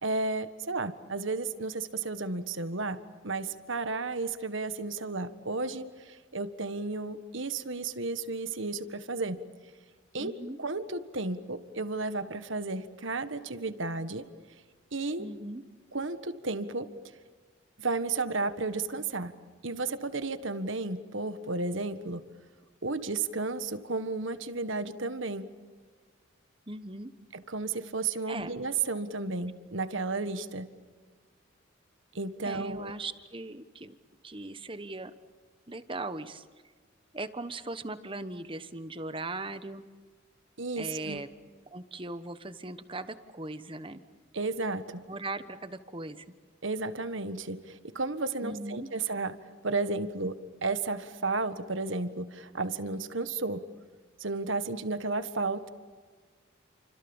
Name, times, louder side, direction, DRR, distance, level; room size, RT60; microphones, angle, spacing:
voice 1, 0.0-3.0 3.2-9.4 10.1-10.3 10.6-14.2 14.9-15.3 15.9-16.9 17.8-19.3 19.6-22.2 22.8-25.5 27.3-30.7 32.1-32.9 40.6-41.2 44.3-45.0 46.6-53.6 54.2-55.7, right 3 dB, 70° right, 11 dB, 1.6 m, -33 dB
voice 2, 10.2-10.6 15.2-15.6 26.7-27.1 28.3-28.5 32.4-34.0 34.2-35.1 35.7-36.5 37.1-39.8 40.7-41.3 41.7-44.0 45.1-46.2 48.4-48.9, right 2 dB, 25° right, 11 dB, 1.2 m, -39 dB
30.0 x 26.0 x 7.2 m, 1.5 s
head